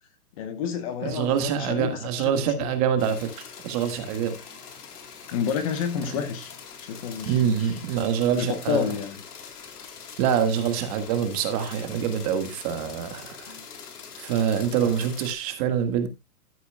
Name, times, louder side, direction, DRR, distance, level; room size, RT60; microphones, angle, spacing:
voice 1, 0.4-2.0 2.3-2.7 5.3-6.5 6.8-7.8 8.3-9.2 13.5-13.7, left 7 dB, 25° left, 1.0 m, -30 dB
voice 2, 1.0-3.3 3.6-4.4 6.1-6.2 7.3-8.8 10.2-13.5 14.2-16.1, right 8 dB, 25° right, 1.6 m, -25 dB
sound 1, 3.0-15.3, left 6 dB, 85° left, 3.7 m, -43 dB
13.0 x 10.5 x 2.2 m
hypercardioid pair, 165°, 45 cm